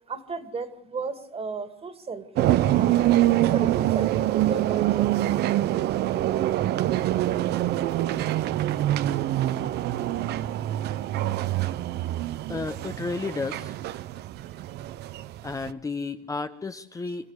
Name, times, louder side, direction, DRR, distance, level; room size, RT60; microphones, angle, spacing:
voice 1, 0.1-3.1 3.4-5.1, right 4 dB, 35° right, 11 dB, 2.3 m, -34 dB
sound 1, 2.4-15.7, right 14 dB, 75° right, 0.8 m, -25 dB
voice 2, 12.5-13.7 15.4-17.3, left 3 dB, 20° left, 8 dB, 0.9 m, -32 dB
26.0 x 14.5 x 8.2 m, 0.78 s
cardioid pair, 110°, 17 cm